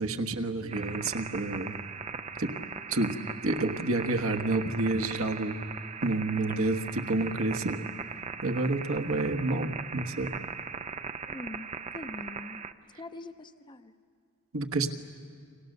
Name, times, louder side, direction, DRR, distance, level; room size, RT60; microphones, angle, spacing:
voice 1, 0.0-1.7 2.4-2.5 2.9-3.1 3.4-5.6 6.0-7.9 8.4-10.3 14.5-14.9, right 2 dB, 70° right, 4 dB, 1.4 m, -29 dB
sound 1, 0.7-12.7, right 5 dB, 30° right, 0.5 m, -39 dB
voice 2, 11.3-11.7 11.9-12.6 12.9-13.9, left 2 dB, 20° left, 9 dB, 0.7 m, -43 dB
30.0 x 24.5 x 6.7 m, 2.2 s
head